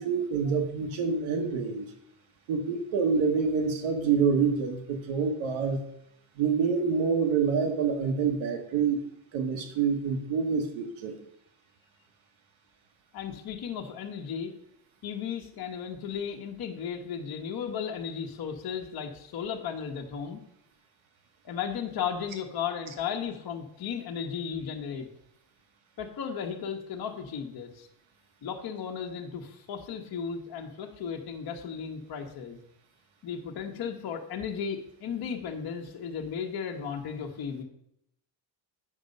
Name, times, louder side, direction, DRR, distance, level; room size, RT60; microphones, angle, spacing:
voice 1, 0.0-1.8 2.5-5.8 6.4-9.0 9.3-11.2, right 5 dB, 90° right, 4 dB, 1.6 m, -27 dB
voice 2, 13.1-14.5 15.0-20.4 21.4-25.1 26.0-27.9 28.4-32.6 33.2-37.6, left 7 dB, 55° left, 2 dB, 1.2 m, -35 dB
8.3 x 5.2 x 5.3 m, 0.74 s
cardioid pair, 125°, 46 cm